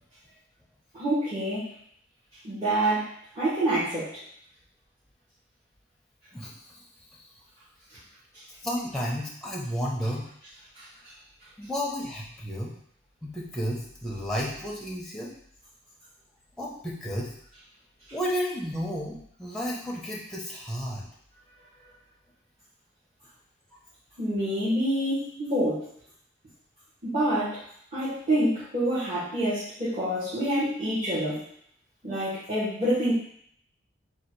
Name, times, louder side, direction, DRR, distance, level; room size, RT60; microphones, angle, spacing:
voice 1, 0.9-1.7 2.4-3.1 3.3-4.1 24.2-25.9 27.0-27.6 27.9-31.4 32.0-33.1, right 1 dB, 30° right, -13 dB, 1.5 m, -27 dB
voice 2, 6.3-6.8 8.6-10.3 11.6-12.7 13.2-15.3 16.6-17.3 18.1-21.0, equal, ahead, -5 dB, 0.8 m, -32 dB
3.9 x 2.5 x 4.6 m, 0.66 s
head